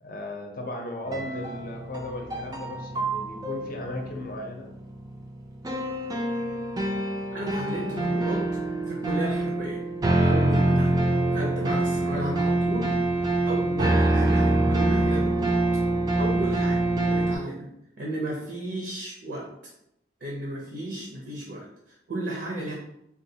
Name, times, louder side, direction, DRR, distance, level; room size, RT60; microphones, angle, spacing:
voice 1, 0.0-4.7 16.2-16.5, left 1 dB, 50° left, 2 dB, 0.6 m, -36 dB
sound 1, 1.1-17.4, right 2 dB, 20° right, 0.3 m, -25 dB
voice 2, 7.3-8.6 8.9-9.8 10.2-10.9 11.3-12.9 13.4-15.6 16.2-16.8 17.1-17.7 18.0-19.5 20.2-22.7, right 1 dB, 65° right, -2 dB, 0.6 m, -33 dB
3.8 x 2.3 x 2.7 m, 0.81 s
head